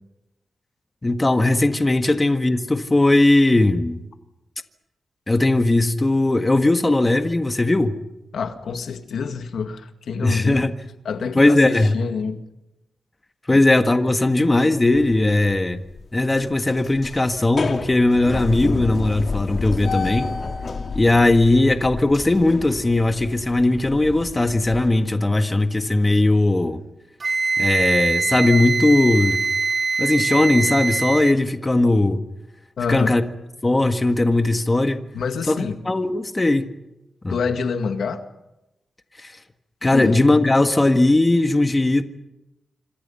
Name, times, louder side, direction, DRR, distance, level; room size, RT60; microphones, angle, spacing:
voice 1, 1.0-4.0 5.3-7.9 10.2-10.7 11.3-12.0 13.5-15.8 16.1-20.3 20.9-26.8 27.6-29.4 30.0-32.2 32.9-33.2 33.6-35.0 35.5-36.7 37.2-37.4 39.2-39.3 39.8-42.0, left 2 dB, 20° left, 1.7 m, -18 dB
voice 2, 8.3-10.7 11.0-12.4 13.5-13.6 32.8-33.2 35.1-35.8 37.3-38.2 39.9-40.2, left 5 dB, 85° left, 2.0 m, -27 dB
sound 1, 14.9-15.5 15.9-16.0 16.4-24.9, left 4 dB, 55° left, 2.1 m, -30 dB
Wind instrument woodwind instrument, 27.2-31.4, right 4 dB, 40° right, 0.8 m, -23 dB
26.5 x 26.0 x 5.7 m
wide cardioid pair, 95°, 0 cm